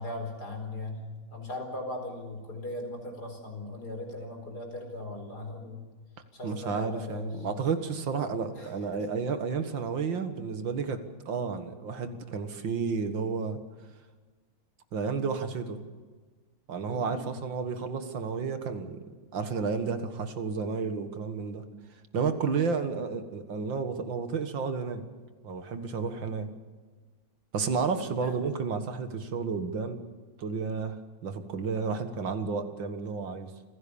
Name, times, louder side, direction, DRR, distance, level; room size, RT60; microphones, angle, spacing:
voice 1, 0.0-5.8 6.3-7.4 8.5-9.0 16.9-17.4 22.5-22.8 26.2-26.3 27.8-28.3, left 2 dB, 50° left, 4 dB, 5.0 m, -39 dB
voice 2, 6.4-13.6 14.9-15.8 16.7-19.0 19.3-21.6 22.1-25.0 25.4-26.5 27.5-30.0 30.4-33.5, right 5 dB, 70° right, 8 dB, 2.3 m, -31 dB
28.0 x 16.0 x 7.1 m, 1.4 s
omnidirectional pair, 2.1 m